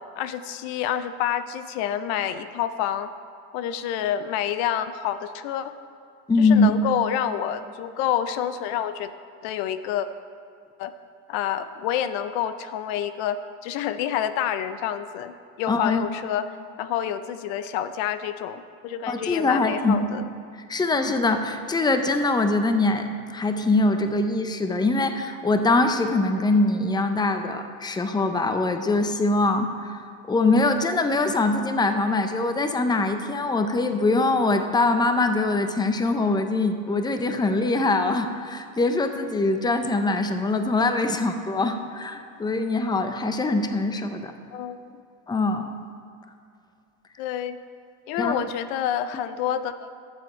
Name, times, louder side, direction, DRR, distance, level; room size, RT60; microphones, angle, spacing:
voice 1, 0.2-3.1 3.5-5.7 6.4-9.1 9.4-10.1 10.8-10.9 11.3-16.5 16.8-20.2 44.5-44.8 47.2-47.6 48.1-49.9, left 10 dB, 75° left, 12 dB, 0.7 m, -28 dB
voice 2, 6.3-6.7 15.7-16.1 19.1-20.3 20.7-29.9 30.3-44.3 45.3-45.7 48.2-48.4, left 2 dB, 10° left, 7 dB, 0.7 m, -23 dB
12.5 x 7.2 x 4.4 m, 2.3 s
supercardioid pair, 95°, 42 cm